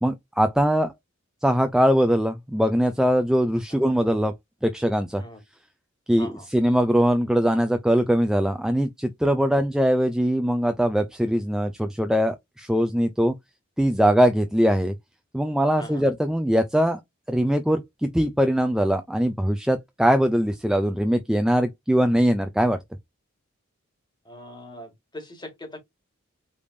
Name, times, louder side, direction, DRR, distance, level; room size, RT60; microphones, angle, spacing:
voice 1, 0.0-0.9 1.4-4.3 4.6-5.2 6.1-13.3 13.8-14.9 15.3-17.0 17.3-22.8, equal, 5° right, 0.4 m, -21 dB
voice 2, 24.2-25.8, left 1 dB, 20° left, 1.6 m, -41 dB
5.0 x 3.4 x 2.6 m
head